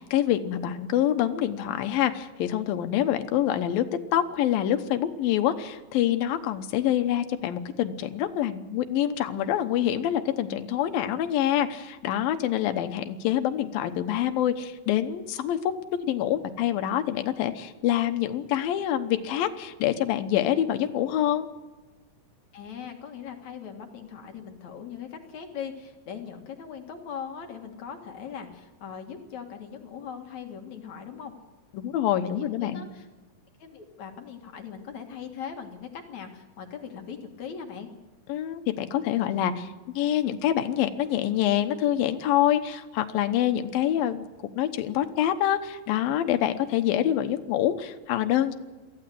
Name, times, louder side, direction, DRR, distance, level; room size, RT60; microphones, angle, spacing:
voice 1, 0.0-3.8 4.1-15.6 16.0-21.5 31.7-32.8 38.3-44.3 44.6-48.5, left 11 dB, 85° left, 8 dB, 2.9 m, -26 dB
voice 2, 22.5-31.3 32.2-33.1 33.6-37.9, left 7 dB, 60° left, 4 dB, 2.8 m, -40 dB
23.5 x 15.5 x 7.7 m, 1.2 s
omnidirectional pair, 4.1 m